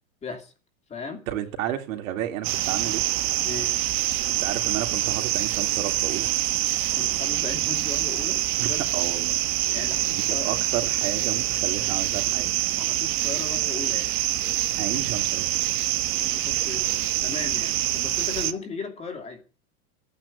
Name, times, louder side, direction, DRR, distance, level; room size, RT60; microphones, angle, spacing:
voice 1, 0.2-0.5 0.9-1.2 3.4-3.7 7.0-8.9 9.7-10.5 11.8-11.9 12.8-14.1 16.2-19.4, left 4 dB, 15° left, 2.6 m, -37 dB
voice 2, 1.3-3.0 4.4-6.3 8.6-9.4 10.1-12.5 14.8-15.6, right 11 dB, 70° right, 3.3 m, -32 dB
sound 1, 2.4-18.5, right 15 dB, 30° right, 1.1 m, -25 dB
14.0 x 9.5 x 8.5 m
supercardioid pair, 165°, 41 cm